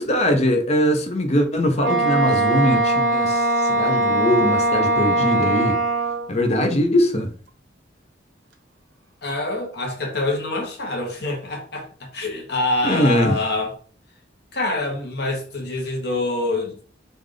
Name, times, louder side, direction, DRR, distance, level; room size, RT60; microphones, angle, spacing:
voice 1, 0.0-5.8 6.3-7.3 12.8-13.4, left 1 dB, 35° left, 0.6 m, -21 dB
Wind instrument woodwind instrument, 1.8-6.3, right 2 dB, 90° right, 0.7 m, -20 dB
voice 2, 9.2-13.7 14.5-16.8, left 2 dB, 60° left, 1.0 m, -26 dB
3.2 x 2.5 x 3.8 m
head